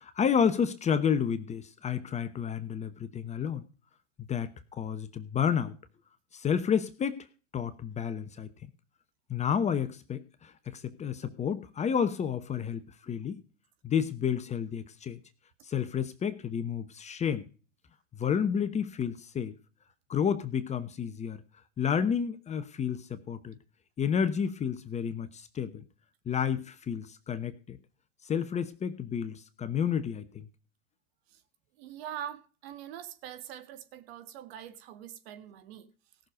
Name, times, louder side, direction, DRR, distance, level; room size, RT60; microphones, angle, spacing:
voice 1, 0.0-3.6 4.2-5.8 6.3-7.3 7.5-8.7 9.3-13.4 13.8-15.2 15.6-17.5 18.1-19.5 20.1-21.4 21.8-23.6 24.0-25.8 26.3-27.8 28.2-30.5, left 7 dB, 20° left, 0.9 m, -30 dB
voice 2, 31.8-35.9, right 10 dB, 55° right, 2.0 m, -43 dB
17.5 x 6.6 x 5.1 m
hypercardioid pair, 110°, 36 cm